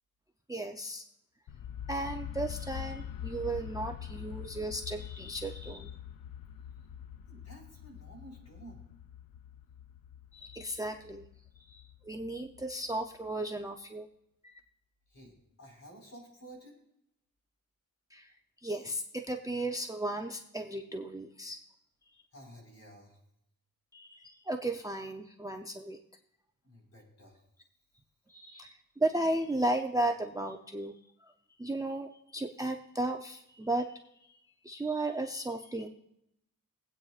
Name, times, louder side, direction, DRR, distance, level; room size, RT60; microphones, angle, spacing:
voice 1, 0.5-1.0 1.9-6.0 10.3-11.2 11.7-14.1 14.4-14.5 18.1-18.3 18.6-21.6 23.9-26.0 28.3-31.3 31.6-34.0 34.6-35.9, right 2 dB, 10° right, 4 dB, 0.5 m, -35 dB
sound 1, 1.5-13.3, left 10 dB, 75° left, 0.6 m, -44 dB
voice 2, 7.3-8.9 15.1-16.8 22.3-23.2 26.6-27.5, right 1 dB, 50° left, -1 dB, 4.8 m, -52 dB
22.5 x 8.7 x 2.4 m, 0.79 s
wide cardioid pair, 145°, 35 cm